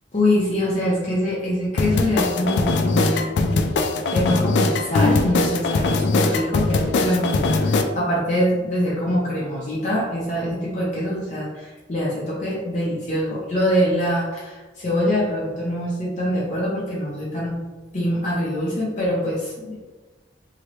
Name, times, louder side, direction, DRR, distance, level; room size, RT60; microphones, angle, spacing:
voice 1, 0.1-3.7 4.1-17.6 17.9-19.8, equal, 40° left, -6 dB, 0.6 m, -24 dB
sound 1, 1.8-7.8, left 3 dB, 70° left, 0.3 m, -21 dB
3.0 x 2.8 x 2.9 m, 1.2 s
head